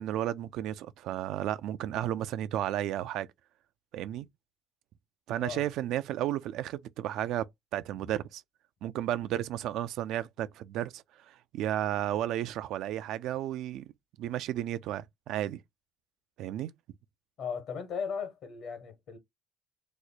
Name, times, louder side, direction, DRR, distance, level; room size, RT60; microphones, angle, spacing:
voice 1, 0.0-3.3 3.9-4.3 5.3-7.5 7.7-8.4 8.8-13.9 14.2-15.6 16.4-16.7, right 12 dB, 70° right, 0.4 m, -33 dB
voice 2, 17.4-19.2, left 6 dB, 60° left, 1.3 m, -37 dB
3.0 x 2.1 x 3.9 m
cardioid pair, 100°, 0 cm